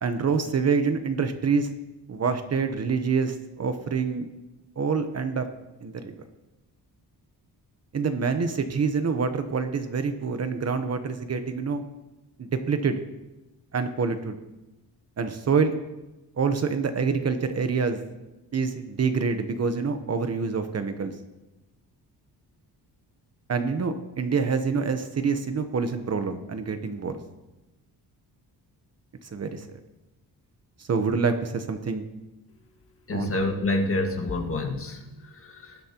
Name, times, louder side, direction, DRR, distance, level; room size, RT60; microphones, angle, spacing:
voice 1, 0.0-1.7 2.1-4.3 4.8-5.5 5.8-6.1 7.9-11.8 12.4-13.0 13.7-14.4 15.2-15.7 16.4-18.0 18.5-21.1 23.5-27.2 29.3-29.7 30.9-32.0 33.1-33.3, right 5 dB, 40° right, 8 dB, 1.0 m, -26 dB
voice 2, 33.1-35.8, left 2 dB, 35° left, 2 dB, 1.7 m, -28 dB
20.0 x 11.0 x 3.0 m, 1.0 s
wide cardioid pair, 135°, 39 cm